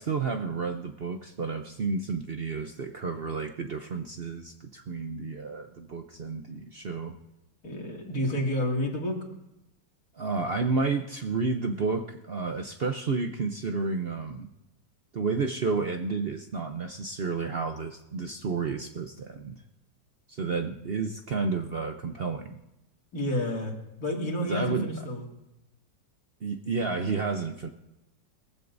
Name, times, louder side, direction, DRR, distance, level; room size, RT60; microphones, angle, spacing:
voice 1, 0.0-7.2 10.1-14.5 15.1-19.6 20.3-22.6 24.5-24.9 26.4-27.7, right 4 dB, 60° right, 5 dB, 0.6 m, -31 dB
voice 2, 7.6-9.2 23.1-23.7 24.0-25.2, left 1 dB, 55° left, -1 dB, 2.8 m, -29 dB
22.5 x 15.0 x 2.6 m, 0.92 s
omnidirectional pair, 2.0 m